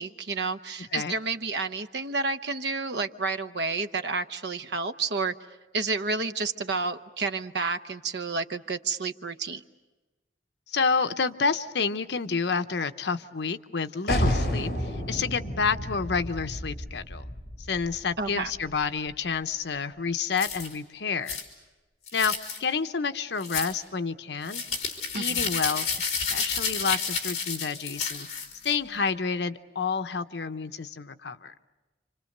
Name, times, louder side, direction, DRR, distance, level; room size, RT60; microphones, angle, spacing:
voice 1, 0.0-5.3 5.7-9.6 18.2-18.5 25.1-25.5, right 4 dB, 75° right, 10 dB, 0.9 m, -30 dB
voice 2, 10.7-17.3 17.6-21.4 22.1-22.3 22.6-24.6 25.1-28.3 28.6-31.5, left 5 dB, 75° left, 9 dB, 0.8 m, -29 dB
sound 1, 14.1-19.6, equal, 55° left, 5.4 m, -31 dB
sound 2, 20.4-20.7 21.3-21.4 22.1-22.6 23.4-23.7 24.4-28.7, left 5 dB, 40° left, 3.6 m, -31 dB
28.5 x 26.0 x 6.6 m, 1.2 s
head